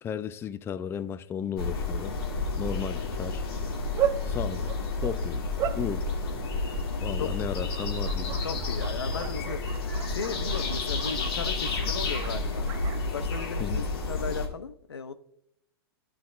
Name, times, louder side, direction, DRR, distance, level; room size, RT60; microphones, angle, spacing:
voice 1, 0.0-2.1 2.6-3.5 4.3-4.7 5.0-6.2 7.0-8.5 13.6-13.9, left 8 dB, 20° left, 0.4 m, -34 dB
sound 1, 1.6-14.5, left 3 dB, 70° left, 1.8 m, -30 dB
Bark, 3.2-14.5, right 10 dB, 30° right, 0.8 m, -38 dB
voice 2, 8.4-9.6 10.0-15.1, left 6 dB, 90° left, 0.7 m, -36 dB
12.0 x 6.0 x 2.4 m
hypercardioid pair, 115°, 13 cm